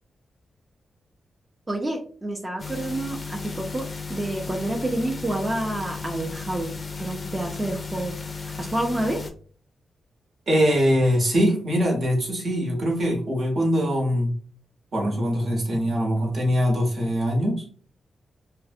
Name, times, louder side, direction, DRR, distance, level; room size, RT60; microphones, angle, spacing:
voice 1, 1.7-6.7 7.0-9.2, right 1 dB, 25° right, 1 dB, 0.5 m, -29 dB
sound 1, 2.6-9.3, left 4 dB, 45° left, 0.4 m, -35 dB
voice 2, 10.5-14.3 14.9-17.7, equal, 65° right, -1 dB, 0.9 m, -22 dB
2.5 x 2.0 x 2.5 m, 0.44 s
cardioid pair, 65°, 0 cm